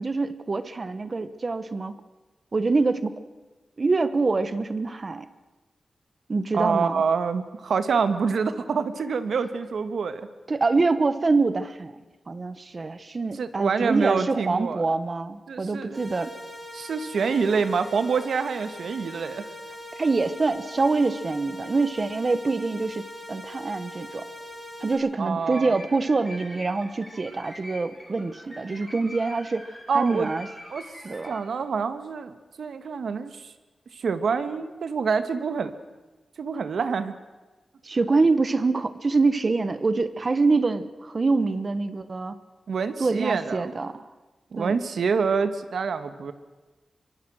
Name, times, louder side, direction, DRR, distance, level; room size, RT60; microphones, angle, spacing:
voice 1, 0.0-1.9 2.5-3.2 3.8-5.3 6.3-7.0 10.5-11.9 12.3-16.3 20.0-23.0 23.3-24.3 24.8-30.5 31.0-31.3 37.8-42.4 43.0-44.0 44.6-44.8, right 3 dB, 35° right, 13 dB, 0.9 m, -25 dB
voice 2, 6.5-10.3 13.3-14.8 15.5-16.0 16.7-19.5 25.2-25.8 29.9-30.3 30.7-30.8 31.3-33.5 33.9-35.7 36.4-37.1 42.7-43.7 44.5-46.3, right 5 dB, 85° right, 10 dB, 1.4 m, -26 dB
sound 1, 15.9-24.9, left 1 dB, 15° right, 7.7 m, -41 dB
sound 2, 25.4-31.4, left 1 dB, 5° left, 6.9 m, -44 dB
24.5 x 23.0 x 6.3 m, 1.2 s
wide cardioid pair, 175°, 0 cm